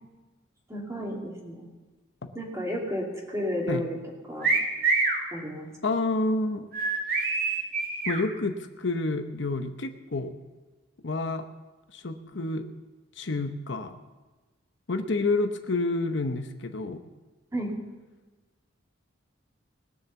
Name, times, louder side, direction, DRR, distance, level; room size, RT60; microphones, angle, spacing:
voice 1, 0.7-1.6 2.3-4.0 4.3-4.5 5.3-5.7 17.5-17.7, equal, 15° right, -1 dB, 2.6 m, -32 dB
sound 1, 4.4-5.2 6.7-8.2, right 4 dB, 50° right, 2.0 m, -25 dB
voice 2, 5.8-6.7 7.1-7.2 8.1-10.3 11.0-11.5 11.9-12.7 13.2-14.0 14.9-17.0, left 2 dB, 65° left, 7 dB, 0.8 m, -29 dB
20.0 x 6.9 x 7.1 m, 1.2 s
head